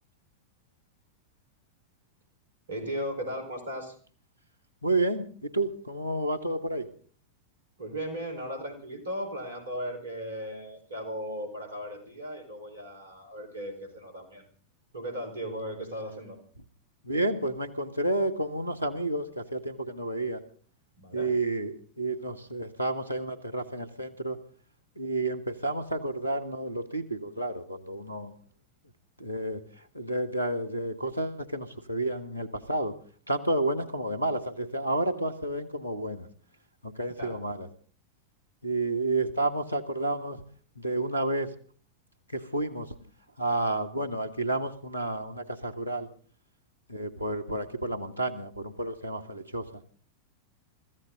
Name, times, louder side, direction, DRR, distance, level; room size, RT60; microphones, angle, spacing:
voice 1, 2.7-3.9 7.8-14.5 14.9-16.4 21.0-21.3 37.1-37.3, equal, 70° right, 7 dB, 4.6 m, -37 dB
voice 2, 4.8-6.9 17.0-20.4 21.1-24.4 25.0-28.3 29.2-29.6 29.9-32.9 33.3-36.3 36.8-37.7 38.6-40.4 40.8-41.5 42.3-42.9 43.4-46.1 46.9-49.7, right 2 dB, 90° left, 13 dB, 1.7 m, -30 dB
24.5 x 14.5 x 3.9 m, 0.43 s
figure-of-eight pair, 90°, 0 cm